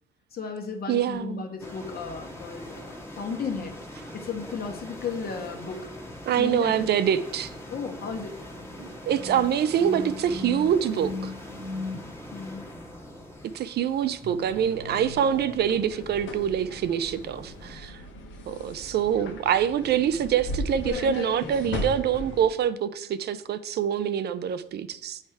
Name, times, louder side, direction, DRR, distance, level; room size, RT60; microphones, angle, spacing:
voice 1, 0.3-3.8 4.1-5.9 6.4-6.9 7.7-8.4 12.3-12.7, left 5 dB, 50° left, 1.4 m, -34 dB
voice 2, 0.9-1.4 6.3-7.5 8.8-11.3 13.5-18.0 18.5-25.2, right 9 dB, 55° right, 0.5 m, -25 dB
sound 1, 1.6-17.8, left 1 dB, 10° left, 1.3 m, -43 dB
sound 2, 8.5-12.0 14.2-15.6, left 3 dB, 30° right, 1.1 m, -38 dB
sound 3, 14.4-22.5, left 2 dB, 75° left, 1.3 m, -37 dB
9.0 x 3.3 x 4.6 m
cardioid pair, 90°, 20 cm